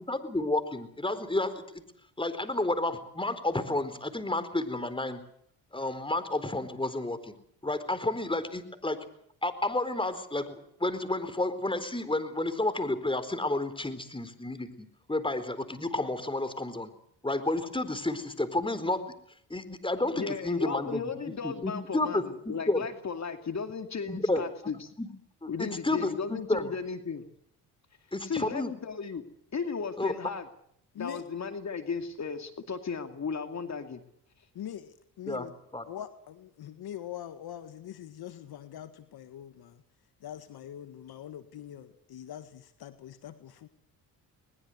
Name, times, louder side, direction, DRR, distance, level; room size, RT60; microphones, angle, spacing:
voice 1, 0.1-1.6 2.2-5.2 5.7-7.3 7.6-9.0 9.4-16.9 17.2-19.0 19.5-21.0 21.4-22.9 24.1-24.4 25.0-25.1 25.4-26.7 28.1-28.7 30.0-30.1 35.3-35.5 35.7-35.8, left 2 dB, 15° left, 12 dB, 4.2 m, -31 dB
voice 2, 20.1-24.9 25.5-27.2 28.2-29.2 29.5-30.5 31.0-34.0, left 5 dB, 45° left, 7 dB, 2.6 m, -35 dB
voice 3, 34.6-35.5 35.9-39.8 40.2-43.7, left 11 dB, 65° left, 11 dB, 1.8 m, -43 dB
21.5 x 21.0 x 8.0 m, 0.68 s
supercardioid pair, 65°, 40 cm